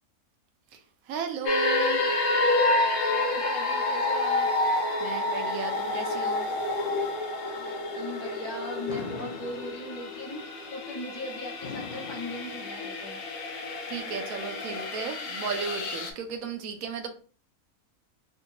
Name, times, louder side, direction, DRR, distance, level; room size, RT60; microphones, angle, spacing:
voice 1, 1.1-2.0 5.0-6.5 13.9-17.1, right 6 dB, 75° right, 0.9 m, -35 dB
sound 1, 1.5-16.1, left 2 dB, 65° left, 1.0 m, -29 dB
voice 2, 3.1-4.5 7.5-13.2, left 1 dB, 30° left, 1.6 m, -39 dB
Fireworks, 8.9-10.2 11.6-13.2, left 4 dB, 80° left, 0.4 m, -41 dB
3.3 x 2.8 x 2.6 m
omnidirectional pair, 1.6 m